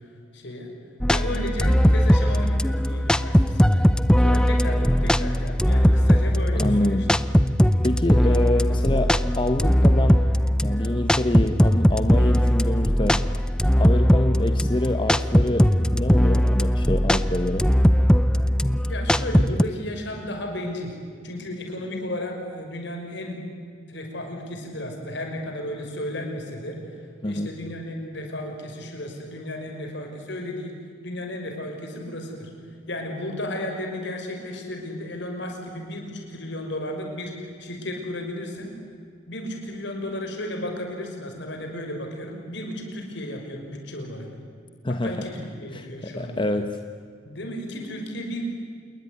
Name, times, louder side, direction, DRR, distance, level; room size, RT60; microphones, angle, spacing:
voice 1, 0.3-0.7 1.1-3.9 4.2-7.0 18.9-21.0 21.2-23.4 23.9-26.8 27.2-30.7 31.0-32.5 32.9-38.7 39.3-44.3 44.9-46.4 47.2-48.4, left 1 dB, 65° left, 3 dB, 6.2 m, -34 dB
sound 1, 1.0-19.6, equal, 5° left, 0.6 m, -19 dB
voice 2, 6.5-7.1 7.8-10.3 10.6-13.2 13.8-17.7 27.2-27.5 44.8-45.5 45.7-46.8, left 1 dB, 25° left, 7 dB, 1.1 m, -26 dB
28.0 x 21.0 x 9.8 m, 2.2 s
head